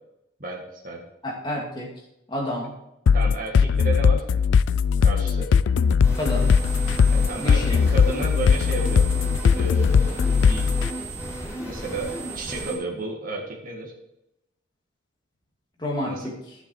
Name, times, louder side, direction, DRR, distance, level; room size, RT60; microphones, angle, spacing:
voice 1, 0.4-1.0 3.1-4.2 5.0-5.5 7.1-9.1 9.5-10.7 11.7-13.9 16.0-16.3, right 2 dB, 45° right, 0 dB, 1.7 m, -32 dB
voice 2, 1.2-1.9 2.3-2.7 6.2-6.5 7.4-7.8 15.8-16.3, left 1 dB, 25° left, -2 dB, 2.4 m, -29 dB
sound 1, 3.1-10.9, left 6 dB, 75° left, 0.3 m, -19 dB
sound 2, 6.0-12.7, right 1 dB, 10° right, 3.3 m, -34 dB
11.5 x 7.2 x 4.7 m, 0.85 s
head